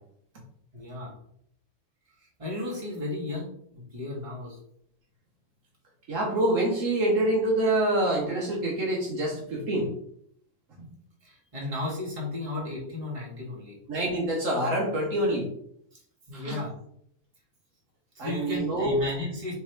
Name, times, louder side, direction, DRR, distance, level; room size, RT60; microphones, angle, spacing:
voice 1, 0.7-1.1 2.2-3.5 3.8-4.6 10.7-13.8 15.9-16.0 16.3-16.7 18.1-19.5, left 2 dB, 25° right, -4 dB, 1.5 m, -34 dB
voice 2, 6.1-9.9 13.9-15.5 16.3-16.6 18.2-19.0, right 1 dB, 65° right, -2 dB, 1.3 m, -26 dB
3.5 x 3.3 x 4.4 m, 0.67 s
omnidirectional pair, 1.5 m